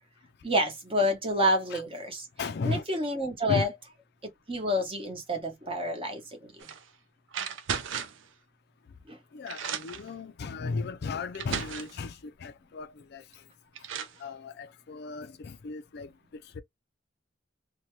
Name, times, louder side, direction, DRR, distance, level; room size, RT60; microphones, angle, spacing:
voice 1, 0.4-2.3 2.6-3.7 4.5-6.7 9.1-9.2, equal, 30° right, 0.9 m, -28 dB
voice 2, 2.4-2.8 3.5-3.7 9.3-12.1 12.4-13.2 14.2-16.1 16.6-16.7, left 4 dB, 55° left, 0.4 m, -35 dB
sound 1, 6.6-6.8 7.3-8.3 9.1-9.2 9.5-10.1 10.9-11.0 11.3-12.0 13.3-13.4 13.7-14.2, right 7 dB, 70° right, 0.5 m, -35 dB
2.7 x 2.2 x 3.1 m
head